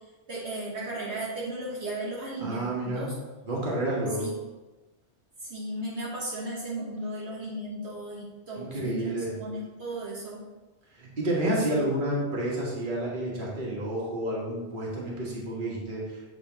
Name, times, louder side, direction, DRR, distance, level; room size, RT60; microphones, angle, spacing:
voice 1, 0.3-3.1 4.2-4.3 5.4-10.4, right 1 dB, 70° right, -6 dB, 1.5 m, -35 dB
voice 2, 2.4-3.1 3.4-4.3 8.5-9.3 10.9-16.2, right 1 dB, 45° right, -4 dB, 1.6 m, -30 dB
7.7 x 3.6 x 3.9 m, 1.1 s
omnidirectional pair, 1.2 m